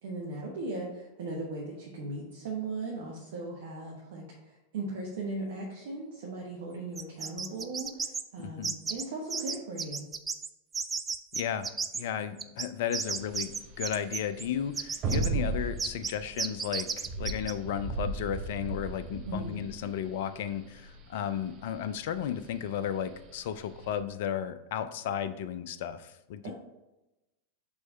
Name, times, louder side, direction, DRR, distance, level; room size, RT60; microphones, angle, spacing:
voice 1, 0.0-10.0 19.2-19.5 26.4-26.5, right 2 dB, 55° right, -2 dB, 1.2 m, -38 dB
sound 1, 7.0-8.2 8.6-9.0 9.3-10.5 10.7-12.0 12.4-14.5 14.7-15.3 15.8-16.1 16.4-17.5, right 5 dB, 15° right, 0.4 m, -33 dB
voice 2, 8.4-8.7 11.3-26.5, left 9 dB, 50° left, 13 dB, 0.4 m, -34 dB
sound 2, 13.1-24.0, right 3 dB, 35° right, 0.9 m, -36 dB
6.3 x 3.1 x 5.4 m, 0.98 s
figure-of-eight pair, 90°, 0 cm